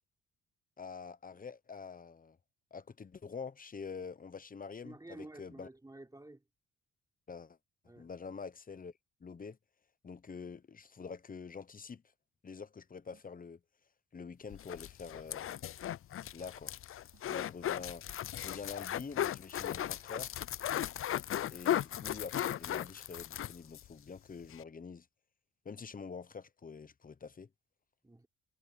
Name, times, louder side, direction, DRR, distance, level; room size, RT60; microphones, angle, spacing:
voice 1, 0.8-2.4 2.7-5.7 7.3-7.6 8.0-8.9 9.2-9.6 10.0-12.0 12.4-13.6 14.1-15.5 16.3-16.7 17.3-18.0 18.3-20.3 21.5-25.1 25.6-27.5, left 5 dB, 30° left, 1.0 m, -46 dB
voice 2, 4.8-6.4 7.8-8.1 17.4-17.5 28.0-28.3, right 2 dB, 10° right, 3.7 m, -51 dB
sound 1, 13.1-13.5 15.1-15.5 17.1-17.5 19.1-19.5, right 10 dB, 60° right, 4.2 m, -70 dB
sound 2, 14.5-23.9 24.2-24.3 24.5-24.6, left 11 dB, 45° left, 0.5 m, -37 dB
cardioid pair, 90°, 30 cm